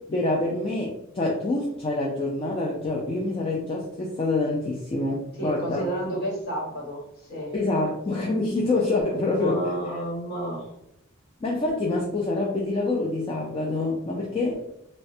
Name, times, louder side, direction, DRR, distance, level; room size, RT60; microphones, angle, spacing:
voice 1, 0.1-5.8 7.5-9.6 11.4-14.6, left 2 dB, 25° left, -2 dB, 0.3 m, -26 dB
voice 2, 5.4-7.5 9.3-10.7, right 1 dB, 45° left, -4 dB, 1.1 m, -31 dB
3.2 x 2.1 x 2.6 m, 0.80 s
head